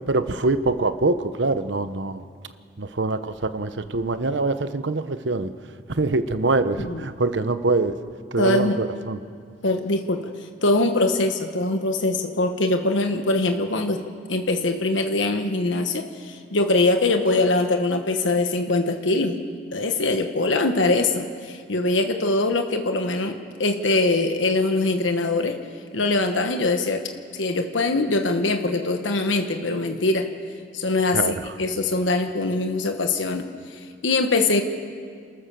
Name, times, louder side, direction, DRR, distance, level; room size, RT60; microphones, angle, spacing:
voice 1, 0.1-2.2 2.8-5.5 5.9-8.0 8.3-9.2 31.1-31.4, right 3 dB, 70° right, 11 dB, 0.9 m, -24 dB
voice 2, 8.4-8.8 9.6-10.2 10.6-14.0 14.3-19.4 19.7-25.6 25.9-27.0 27.3-30.3 30.7-33.4 33.7-34.6, left 2 dB, 90° left, 5 dB, 1.2 m, -22 dB
28.5 x 13.5 x 6.9 m, 2.1 s
head